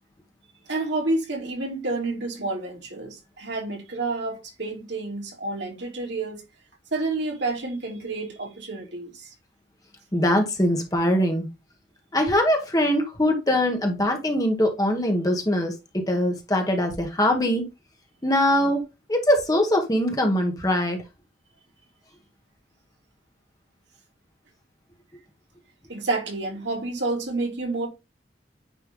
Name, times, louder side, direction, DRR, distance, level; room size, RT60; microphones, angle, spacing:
voice 1, 0.7-6.4 6.9-9.3 25.9-27.9, right 2 dB, 75° right, 2.5 m, -29 dB
voice 2, 10.1-11.5 12.1-17.6 18.2-18.8 19.1-21.0, left 1 dB, 20° left, 1.3 m, -22 dB
9.2 x 3.3 x 3.7 m
head